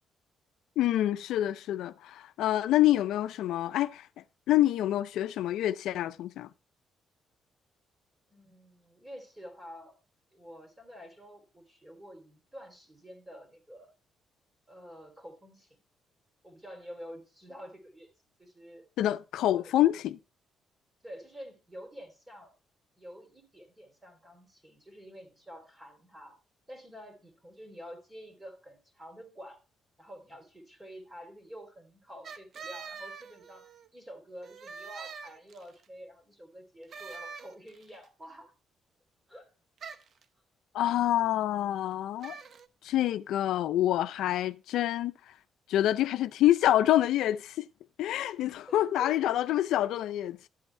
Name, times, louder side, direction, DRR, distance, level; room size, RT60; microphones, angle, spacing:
voice 1, 0.8-4.1 4.5-6.5 19.0-20.2 40.7-42.3 42.8-45.1 45.7-47.6 48.0-50.5, left 13 dB, 85° left, 0.4 m, -27 dB
voice 2, 8.3-10.0 10.3-13.9 14.7-15.8 16.4-18.1 18.4-18.9 19.5-19.8 21.0-22.5 23.0-26.4 26.7-29.6 30.0-38.5 39.3-39.5 48.3-49.2, equal, 15° right, 3.2 m, -48 dB
sound 1, 32.2-33.9 34.4-35.8 36.9-37.9 39.8-40.2 42.2-42.7, right 5 dB, 55° right, 0.8 m, -44 dB
12.0 x 8.0 x 3.3 m
cardioid pair, 90°, 0 cm